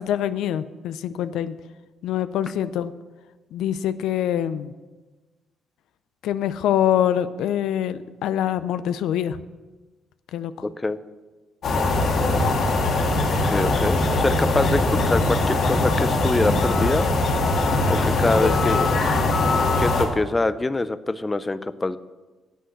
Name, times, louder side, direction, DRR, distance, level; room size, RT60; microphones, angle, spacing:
voice 1, 0.0-1.6 2.0-2.9 3.5-4.7 6.2-9.4 10.3-10.5, left 10 dB, 85° left, 13 dB, 0.4 m, -24 dB
voice 2, 10.6-11.0 13.4-17.1 17.9-18.8 19.8-22.0, left 2 dB, 20° left, 14 dB, 0.5 m, -24 dB
sound 1, 11.6-20.1, left 2 dB, 60° left, 2.3 m, -21 dB
9.9 x 8.1 x 6.5 m, 1.2 s
cardioid pair, 90°, 0 cm